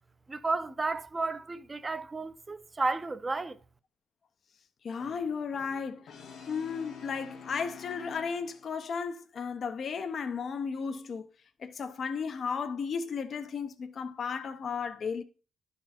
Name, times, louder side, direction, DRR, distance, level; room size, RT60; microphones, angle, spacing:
voice 1, 0.3-3.6, right 3 dB, 25° right, 0.7 m, -32 dB
voice 2, 4.8-6.1 6.5-11.3 11.6-15.2, left 6 dB, 50° left, 0.8 m, -34 dB
Brass instrument, 5.0-8.8, left 5 dB, 70° left, 1.5 m, -48 dB
11.5 x 4.4 x 4.2 m
cardioid pair, 90°, 0 cm